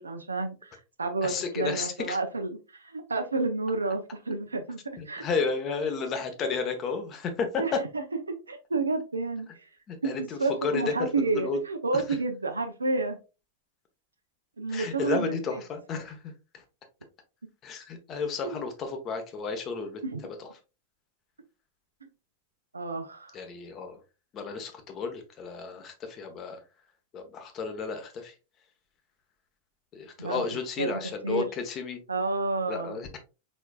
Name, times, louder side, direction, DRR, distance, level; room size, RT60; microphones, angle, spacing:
voice 1, 0.0-4.8 5.0-5.2 7.6-9.5 10.0-13.2 14.6-15.6 18.4-18.6 20.0-20.3 22.7-23.3 30.2-30.4 30.8-31.5 32.1-33.0, right 3 dB, 75° right, 0.7 m, -30 dB
voice 2, 1.2-2.2 5.0-7.8 9.9-11.1 11.3-11.6 11.9-12.0 14.7-16.3 17.6-20.0 20.4-20.5 23.3-24.0 24.3-26.6 27.1-28.3 29.9-32.0 32.7-33.2, left 5 dB, 30° left, 1.0 m, -32 dB
4.5 x 4.2 x 2.3 m
figure-of-eight pair, 90°, 0 cm